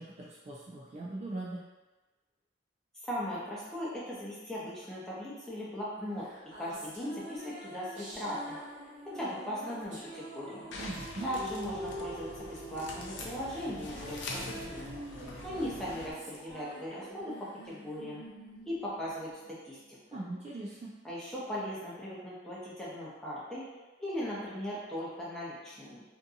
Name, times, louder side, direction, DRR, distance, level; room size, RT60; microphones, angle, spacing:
voice 1, 0.0-1.6 10.8-11.3 20.1-20.9, right 2 dB, 35° right, -4 dB, 0.3 m, -40 dB
voice 2, 3.0-6.3 6.6-8.6 9.1-10.7 11.2-14.2 14.5-14.9 15.4-18.2 18.7-19.8 20.1-20.2 21.0-23.6 24.0-26.0, equal, 5° left, -8 dB, 0.7 m, -38 dB
sound 1, 6.2-19.9, right 1 dB, 75° right, 1.2 m, -46 dB
sound 2, 8.0-17.3, right 1 dB, 20° left, 1.1 m, -56 dB
sound 3, 10.7-16.1, left 2 dB, 70° left, 0.4 m, -44 dB
2.6 x 2.6 x 2.4 m, 1.1 s
head